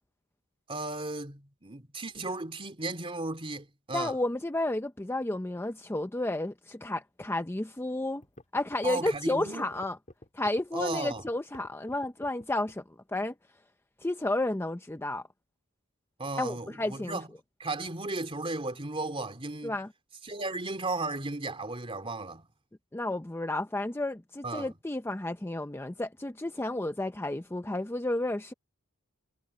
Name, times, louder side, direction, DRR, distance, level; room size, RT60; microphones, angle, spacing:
voice 1, 0.7-4.1 8.8-9.7 10.7-11.2 16.2-17.3 17.6-19.8 20.2-22.5 24.4-24.7, right 2 dB, 25° right, 3.0 m, -35 dB
voice 2, 3.9-8.2 8.5-10.0 10.3-12.8 13.1-13.3 14.0-15.2 16.4-17.2 19.6-19.9 22.9-28.5, left 2 dB, 10° left, 0.6 m, -32 dB
sound 1, 7.8-7.9 8.2-12.9, left 1 dB, 35° left, 3.5 m, -50 dB
head